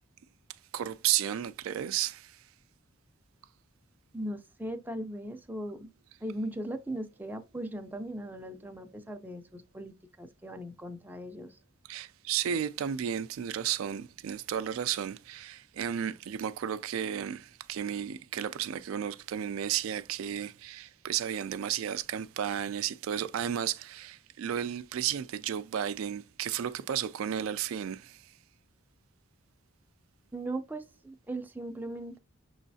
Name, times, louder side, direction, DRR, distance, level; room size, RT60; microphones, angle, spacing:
voice 1, 0.7-2.4 11.9-28.3, right 9 dB, 70° right, 0.3 m, -33 dB
voice 2, 4.1-5.9 6.2-11.6 30.3-32.2, right 1 dB, 10° right, 0.4 m, -38 dB
6.1 x 3.1 x 2.6 m
head